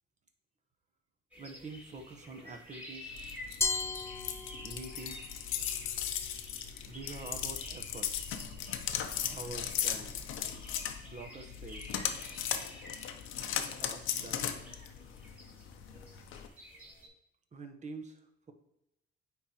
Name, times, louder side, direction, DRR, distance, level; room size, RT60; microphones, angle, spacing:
sound 1, 1.3-17.1, left 1 dB, 5° right, 2.2 m, -50 dB
voice 1, 1.4-3.2 4.6-5.3 6.9-8.1 9.3-10.1 11.0-11.9 13.8-14.5 17.5-18.5, right 3 dB, 35° right, 5 dB, 1.0 m, -46 dB
sound 2, 3.1-16.5, left 9 dB, 90° left, 0.6 m, -37 dB
Glass, 3.6-5.0, left 4 dB, 15° left, 0.4 m, -34 dB
9.4 x 3.8 x 2.9 m, 0.86 s
cardioid pair, 90°, 20 cm